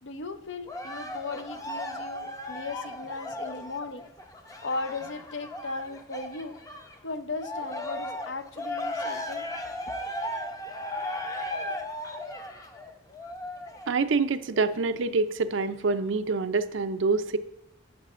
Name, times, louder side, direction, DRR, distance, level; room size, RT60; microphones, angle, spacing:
voice 1, 0.0-4.1 4.6-6.6 7.0-9.5, left 3 dB, 65° left, 9 dB, 0.7 m, -37 dB
Cheering, 0.7-7.0 7.4-14.0 14.6-14.7, left 1 dB, 15° left, 0.6 m, -36 dB
voice 2, 13.9-17.4, right 4 dB, 70° right, 11 dB, 0.5 m, -26 dB
11.5 x 8.2 x 2.5 m, 0.95 s
head